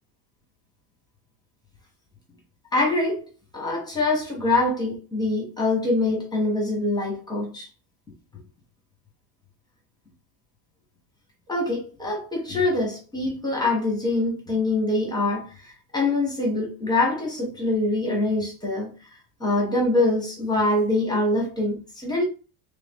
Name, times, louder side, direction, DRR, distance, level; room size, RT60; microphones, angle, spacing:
voice 1, 2.7-3.3 3.5-7.7 11.5-18.9 19.4-22.2, left 2 dB, 10° left, 0.7 m, -24 dB
3.2 x 2.6 x 3.5 m
cardioid pair, 170°, 46 cm